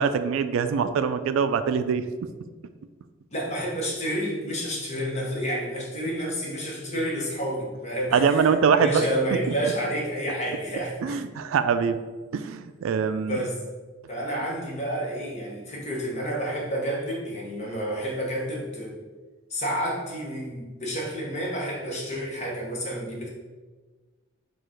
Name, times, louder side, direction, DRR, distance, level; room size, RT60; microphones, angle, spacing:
voice 1, 0.0-2.0 8.1-9.1 11.0-12.0 12.3-13.4, right 6 dB, 80° right, 11 dB, 0.3 m, -23 dB
voice 2, 3.3-11.2 13.2-13.6 14.1-19.0 19.5-23.3, equal, 35° left, -2 dB, 1.0 m, -30 dB
4.7 x 2.4 x 4.5 m, 1.3 s
head